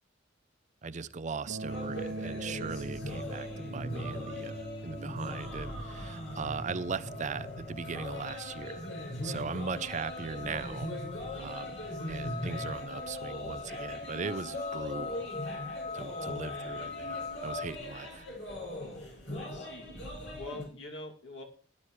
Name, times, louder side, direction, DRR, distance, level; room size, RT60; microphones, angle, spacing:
voice 1, 0.8-8.9 9.2-10.9 11.4-15.3 15.9-18.2, right 5 dB, 40° right, 14 dB, 0.5 m, -39 dB
sound 1, 1.5-11.6, right 1 dB, 85° right, 1.3 m, -44 dB
sound 2, 1.7-20.6, left 1 dB, 90° left, 5.9 m, -40 dB
sound 3, 2.7-17.7, left 3 dB, 35° left, 0.6 m, -43 dB
voice 2, 18.8-19.9 20.3-21.4, left 2 dB, 65° left, 1 dB, 2.4 m, -45 dB
18.0 x 11.0 x 3.1 m, 0.43 s
head